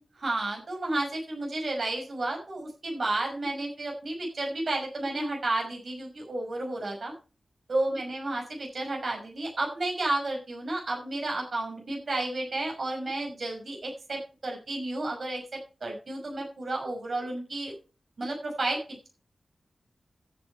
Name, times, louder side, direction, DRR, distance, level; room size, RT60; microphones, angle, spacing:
voice 1, 0.2-7.1 7.7-17.7 18.2-18.8, right 2 dB, 65° right, 0 dB, 5.9 m, -32 dB
13.5 x 9.4 x 4.6 m, 0.33 s
wide cardioid pair, 70°, 0 cm